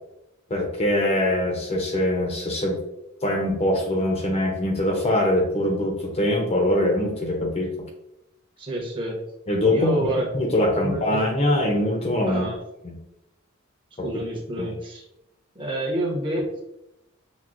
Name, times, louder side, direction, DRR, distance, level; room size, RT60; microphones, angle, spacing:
voice 1, 0.5-2.8 3.2-7.7 9.5-12.4 12.8-13.0 14.0-14.1 14.6-14.7, left 1 dB, 30° left, 1 dB, 0.5 m, -23 dB
voice 2, 8.6-9.2 9.7-10.3 10.8-11.2 12.3-12.6 14.0-15.0 15.5-16.6, right 1 dB, 25° right, -3 dB, 0.8 m, -28 dB
5.8 x 2.1 x 2.4 m, 0.86 s
head